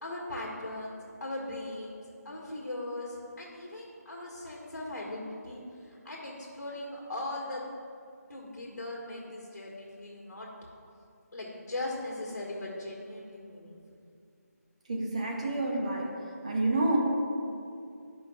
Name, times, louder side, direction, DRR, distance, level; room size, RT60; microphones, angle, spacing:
voice 1, 0.0-7.6 8.3-10.5 11.3-14.0, left 1 dB, 75° left, -3 dB, 1.4 m, -39 dB
voice 2, 14.9-16.2 16.4-17.0, right 2 dB, 25° right, -1 dB, 0.6 m, -28 dB
12.0 x 5.1 x 2.3 m, 2.4 s
figure-of-eight pair, 175°, 9 cm